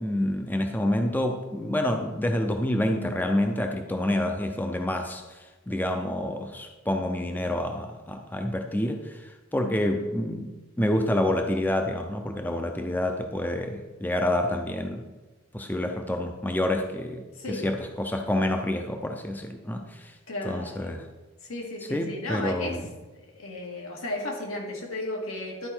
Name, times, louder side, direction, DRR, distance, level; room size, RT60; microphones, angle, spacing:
voice 1, 0.0-10.5 10.8-15.0 15.5-20.1 20.4-21.0 21.9-22.9, left 1 dB, 10° left, 4 dB, 0.5 m, -28 dB
voice 2, 9.8-10.1 17.3-17.7 20.3-20.9 21.4-22.8 23.3-25.7, left 1 dB, 90° left, -1 dB, 2.2 m, -34 dB
11.5 x 4.8 x 4.4 m, 1.2 s
head